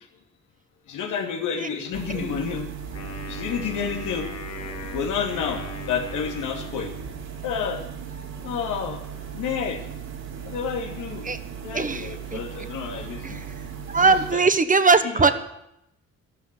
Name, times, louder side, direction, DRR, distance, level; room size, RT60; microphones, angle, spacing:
voice 1, 0.9-2.7 3.3-4.3 4.9-6.9 7.4-7.8 8.4-9.0 9.3-9.8 10.4-11.3 11.6-13.4 14.0-14.4 15.0-15.3, left 7 dB, 85° left, 3 dB, 2.7 m, -30 dB
sound 1, 1.9-14.3, right 7 dB, 60° right, 3.5 m, -37 dB
Wind instrument woodwind instrument, 2.9-7.4, left 3 dB, 55° left, 2.4 m, -39 dB
voice 2, 11.7-12.4 13.2-13.4 13.9-15.3, right 4 dB, 25° right, 10 dB, 1.3 m, -20 dB
12.5 x 12.5 x 8.4 m, 0.80 s
cardioid pair, 90°, 30 cm